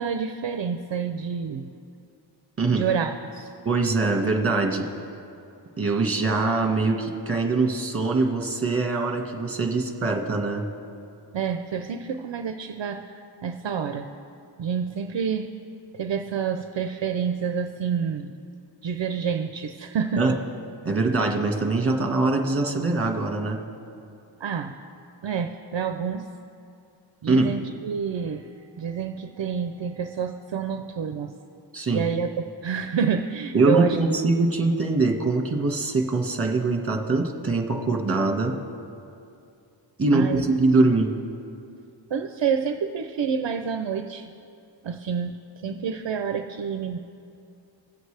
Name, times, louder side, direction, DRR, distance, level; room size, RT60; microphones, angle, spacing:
voice 1, 0.0-1.7 2.7-3.5 11.3-14.1 14.6-15.5 15.9-18.3 18.8-20.4 24.4-24.7 25.2-26.3 27.2-31.3 31.9-32.3 32.6-34.0 40.1-40.4 42.1-44.3 44.8-47.0, right 7 dB, 70° right, 6 dB, 0.6 m, -28 dB
voice 2, 3.6-4.8 5.8-10.7 20.2-20.3 20.8-23.6 27.3-27.5 31.7-32.0 33.5-38.5 40.0-41.1, right 3 dB, 30° right, 2 dB, 1.5 m, -23 dB
21.0 x 7.9 x 3.3 m, 2.5 s
wide cardioid pair, 60°, 47 cm